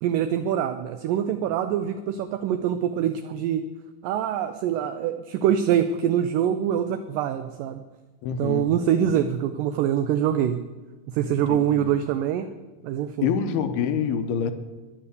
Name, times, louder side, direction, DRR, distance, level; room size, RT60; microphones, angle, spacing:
voice 1, 0.0-3.7 4.0-7.8 8.4-10.6 11.1-12.5 12.8-13.3, right 9 dB, 80° right, 9 dB, 2.0 m, -24 dB
voice 2, 8.2-8.7 9.0-9.3 11.3-12.0 13.2-14.5, left 7 dB, 85° left, 9 dB, 3.0 m, -27 dB
13.0 x 11.0 x 8.3 m, 1.2 s
omnidirectional pair, 4.5 m